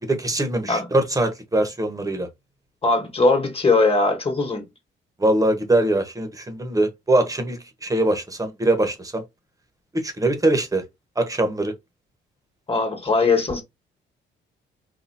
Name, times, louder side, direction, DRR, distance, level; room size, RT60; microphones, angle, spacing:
voice 1, 0.1-2.3 5.2-9.2 9.9-10.8 11.2-11.7, right 1 dB, 15° right, 1.1 m, -22 dB
voice 2, 2.8-4.6 12.7-13.6, left 3 dB, 30° left, 1.5 m, -20 dB
4.2 x 2.6 x 2.7 m
cardioid pair, 90°, 20 cm